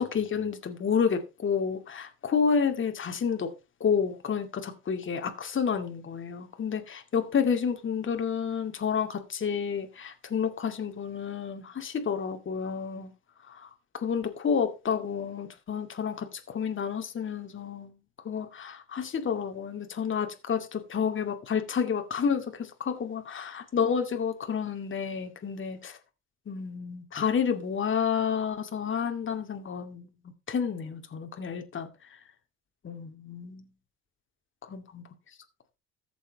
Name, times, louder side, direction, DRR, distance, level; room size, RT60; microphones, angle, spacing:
voice 1, 0.0-3.5 3.8-13.1 13.5-17.9 18.2-26.0 26.5-30.1 30.5-31.9 32.8-33.7 34.6-35.0, left 6 dB, 40° left, 2.3 m, -30 dB
14.0 x 7.0 x 4.1 m
supercardioid pair, 80°, 31 cm